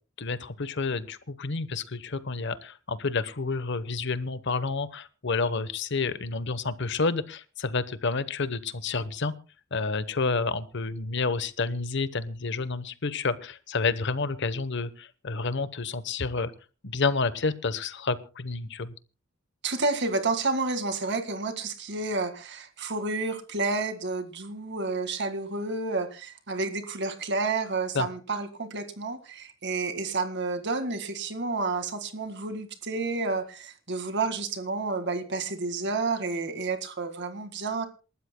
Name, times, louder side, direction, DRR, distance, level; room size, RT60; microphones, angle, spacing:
voice 1, 0.2-9.3 9.7-16.5 16.8-18.9 27.9-28.1, left 4 dB, 60° left, 14 dB, 1.0 m, -29 dB
voice 2, 19.6-37.9, right 3 dB, 60° right, 7 dB, 1.9 m, -30 dB
27.5 x 13.0 x 2.2 m, 0.34 s
head